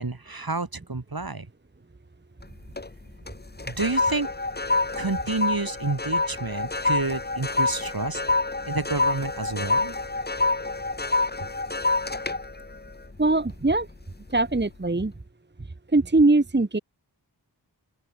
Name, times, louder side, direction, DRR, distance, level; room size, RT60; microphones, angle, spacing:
voice 1, 0.0-1.5 3.7-4.3 4.9-8.2 8.7-9.9, right 3 dB, 55° right, 2.7 m, -29 dB
sound 1, 2.4-2.9 3.3-13.8 14.3-14.6, left 2 dB, 25° left, 0.9 m, -27 dB
voice 2, 13.2-13.9 14.3-15.1 15.9-16.8, right 2 dB, 25° right, 1.0 m, -21 dB
open air
wide cardioid pair, 45°, 43 cm